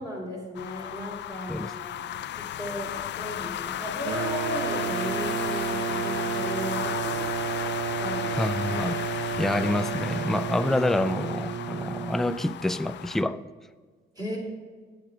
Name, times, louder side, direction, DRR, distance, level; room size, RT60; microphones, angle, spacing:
voice 1, 0.0-7.3 8.0-9.0 14.1-14.4, left 1 dB, 20° right, 3.4 m, -36 dB
sound 1, 0.5-13.2, left 12 dB, 65° left, 0.4 m, -35 dB
sound 2, 4.0-12.5, right 7 dB, 70° right, 0.6 m, -31 dB
voice 2, 8.4-9.0 9.4-13.4, left 1 dB, ahead, 0.3 m, -27 dB
9.1 x 7.9 x 4.9 m
cardioid pair, 90°, 20 cm